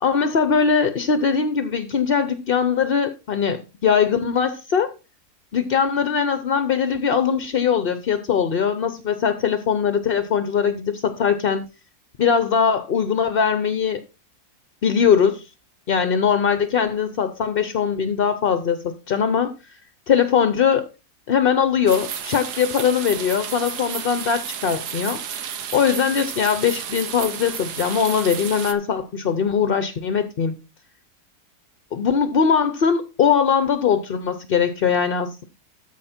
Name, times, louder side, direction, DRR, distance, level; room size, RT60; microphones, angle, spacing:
voice 1, 0.0-3.6 3.8-4.9 5.5-11.6 12.2-14.0 14.8-15.4 15.9-19.8 20.1-20.9 21.3-25.4 25.7-30.5 31.9-35.4, left 7 dB, 50° left, 0.7 m, -21 dB
sound 1, 21.9-28.7, right 8 dB, 90° right, 1.6 m, -32 dB
13.5 x 5.0 x 4.3 m
omnidirectional pair, 1.7 m